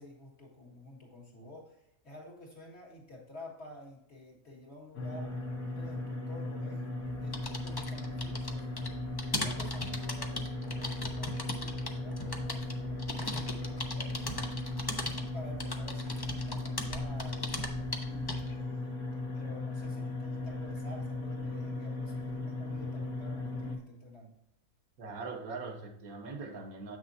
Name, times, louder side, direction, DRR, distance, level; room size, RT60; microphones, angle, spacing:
voice 1, 0.0-5.4 5.7-9.0 9.3-14.4 15.0-17.6 18.0-24.4, left 1 dB, 50° left, 2.1 m, -51 dB
sound 1, 4.9-23.8, left 2 dB, 75° left, 1.6 m, -37 dB
sound 2, 7.0-18.6, left 1 dB, 25° left, 0.5 m, -39 dB
voice 2, 25.0-27.0, right 4 dB, 80° right, 1.5 m, -41 dB
8.1 x 6.2 x 2.7 m
omnidirectional pair, 1.5 m